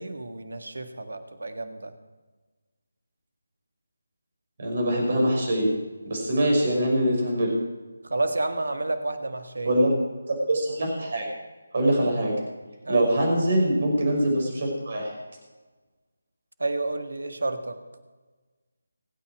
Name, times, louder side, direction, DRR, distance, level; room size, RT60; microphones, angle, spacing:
voice 1, 0.0-1.9 8.0-9.7 12.8-13.1 16.6-17.8, right 2 dB, 60° right, 8 dB, 1.8 m, -30 dB
voice 2, 4.6-5.7 6.1-7.5 9.6-9.9 10.3-11.3 11.7-12.4 12.9-15.1, right 1 dB, 45° right, 0 dB, 6.2 m, -23 dB
26.5 x 9.1 x 4.8 m, 1.3 s
figure-of-eight pair, 155°, 0 cm